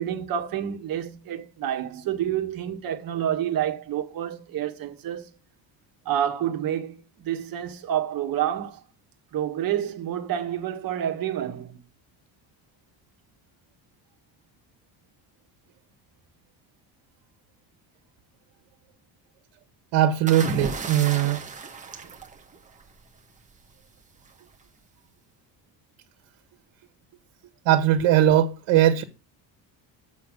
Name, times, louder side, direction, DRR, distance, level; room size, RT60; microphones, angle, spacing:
voice 1, 0.0-5.3 6.1-8.8 9.3-11.8, right 10 dB, 50° right, 1.7 m, -28 dB
voice 2, 19.9-21.4 27.6-29.0, right 11 dB, 80° right, 1.6 m, -20 dB
sound 1, 20.3-23.0 24.3-24.6, right 4 dB, 15° right, 1.3 m, -34 dB
8.1 x 7.0 x 6.5 m
cardioid pair, 175°, 45 cm